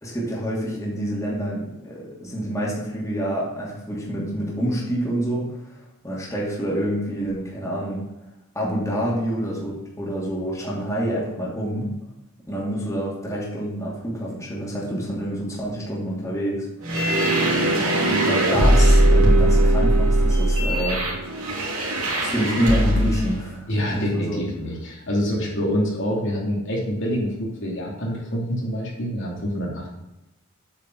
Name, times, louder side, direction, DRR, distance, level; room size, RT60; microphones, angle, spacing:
voice 1, 0.0-5.5 6.0-8.0 8.5-11.9 12.5-16.7 18.0-21.1 22.2-24.4, equal, 15° left, -5 dB, 2.6 m, -27 dB
sound 1, 16.8-23.3, right 1 dB, 70° right, 3.1 m, -19 dB
voice 2, 23.7-29.9, equal, 55° left, -3 dB, 2.8 m, -26 dB
8.9 x 5.2 x 7.7 m, 0.94 s
head